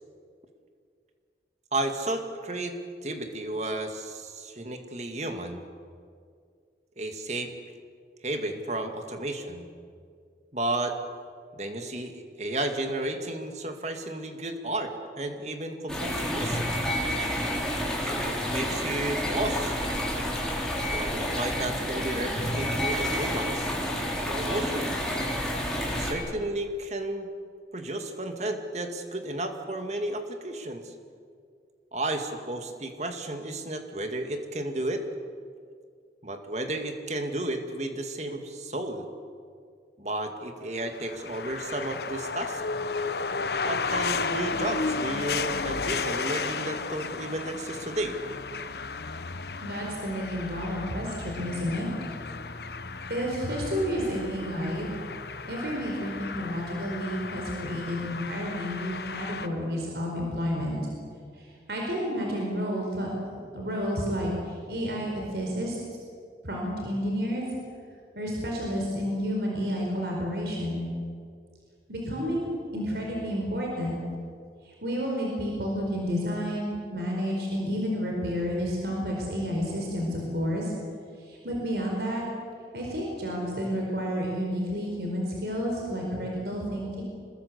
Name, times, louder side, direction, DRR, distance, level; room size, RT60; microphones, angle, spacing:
voice 1, 1.7-5.6 7.0-7.6 8.2-9.7 10.5-11.0 11.5-16.6 18.0-19.8 20.9-23.7 24.3-25.0 26.0-27.3 27.7-30.9 31.9-35.0 36.2-39.1 40.0-42.6 43.6-48.2, right 1 dB, 40° right, 5 dB, 2.3 m, -33 dB
sound 1, 15.9-26.1, equal, 5° left, 4.4 m, -29 dB
sound 2, 40.9-59.5, left 4 dB, 70° left, 1.0 m, -34 dB
voice 2, 49.6-51.9 53.1-55.0 55.4-60.8 61.4-63.1 63.5-65.8 66.4-67.4 68.1-70.9 71.9-74.0 74.8-80.7 81.2-82.2 82.7-87.0, equal, 70° right, -1 dB, 4.7 m, -30 dB
26.0 x 20.5 x 8.2 m, 2.2 s
head